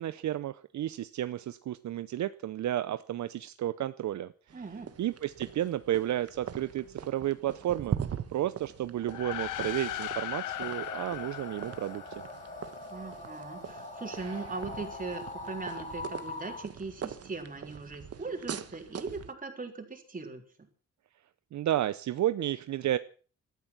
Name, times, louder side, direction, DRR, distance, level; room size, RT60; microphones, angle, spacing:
voice 1, 0.0-4.6 5.0-8.0 8.3-12.0 21.5-23.0, right 12 dB, 65° right, 14 dB, 0.7 m, -32 dB
voice 2, 4.5-4.9 12.9-20.7, right 4 dB, 25° right, 4 dB, 3.8 m, -40 dB
sound 1, 4.5-19.3, right 8 dB, 50° right, 1.3 m, -42 dB
sound 2, 9.0-12.7, left 12 dB, 85° left, 0.9 m, -38 dB
sound 3, 10.4-16.6, left 2 dB, 25° left, 3.7 m, -43 dB
18.0 x 13.0 x 5.9 m, 0.41 s
cardioid pair, 125°, 30 cm